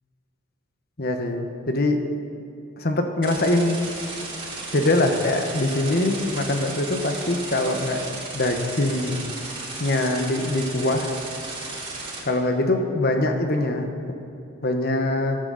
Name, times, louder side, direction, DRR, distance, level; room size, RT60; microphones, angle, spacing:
voice 1, 1.0-2.0 2.8-3.9 4.7-9.3 9.8-11.1 12.2-13.9 14.6-15.4, left 2 dB, 45° left, 5 dB, 1.2 m, -23 dB
sound 1, 3.2-12.2, right 3 dB, 25° right, 3.0 m, -35 dB
15.0 x 11.5 x 4.1 m, 2.8 s
head